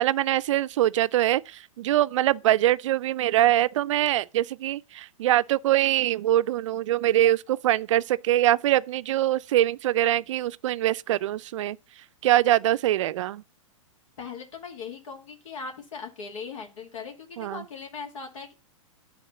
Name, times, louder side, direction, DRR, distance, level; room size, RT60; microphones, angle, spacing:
voice 1, 0.0-11.8 12.2-13.4 17.4-17.6, right 13 dB, 65° right, 0.4 m, -23 dB
voice 2, 14.2-18.5, left 5 dB, 70° left, 2.2 m, -39 dB
10.0 x 3.6 x 6.8 m
hypercardioid pair, 120°, 17 cm